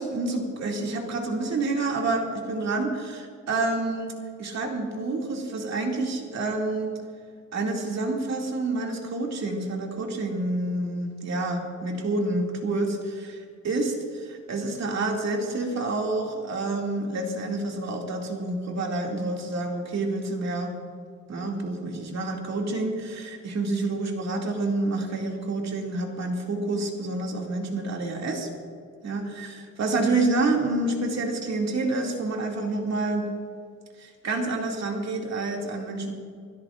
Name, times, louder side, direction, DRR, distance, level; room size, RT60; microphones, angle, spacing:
voice 1, 0.0-4.1 4.4-6.9 7.5-13.4 13.6-20.7 21.3-28.5 29.0-29.5 29.8-33.3 34.0-36.1, right 2 dB, 55° right, 0 dB, 2.5 m, -28 dB
28.5 x 13.0 x 2.5 m, 2.2 s
wide cardioid pair, 150°, 32 cm